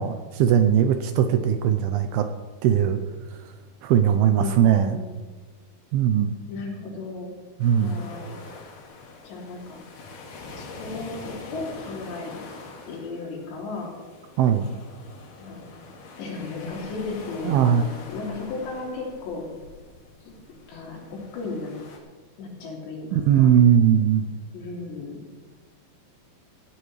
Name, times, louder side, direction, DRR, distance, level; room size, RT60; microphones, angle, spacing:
voice 1, 0.0-2.3 2.6-3.0 3.3-3.4 3.8-5.0 5.9-6.3 7.6-8.0 14.4-14.7 17.4-17.8 23.1-24.3, right 9 dB, 80° right, 8 dB, 2.4 m, -19 dB
voice 2, 4.3-5.2 6.5-7.4 7.7-8.3 9.2-9.8 10.6-12.5 12.9-13.9 15.4-15.6 16.2-19.5 20.3-20.4 20.7-21.8 22.4-23.5 24.5-25.3, left 3 dB, 80° left, -2 dB, 5.2 m, -35 dB
sound 1, 7.6-22.0, left 3 dB, 65° left, 3.9 m, -44 dB
17.0 x 15.5 x 3.3 m, 1.3 s
omnidirectional pair, 5.0 m